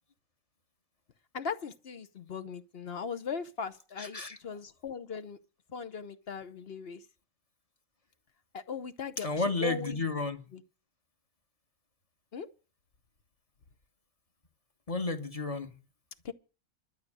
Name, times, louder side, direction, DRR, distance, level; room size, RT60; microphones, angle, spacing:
voice 1, 1.3-5.4 5.7-7.0 8.5-10.1 10.5-10.6 12.3-12.5 16.2-16.3, left 6 dB, 50° left, 0.9 m, -39 dB
voice 2, 4.0-4.4 9.2-10.4 14.9-15.7, left 3 dB, 25° left, 1.2 m, -32 dB
12.0 x 6.4 x 9.6 m
omnidirectional pair, 1.5 m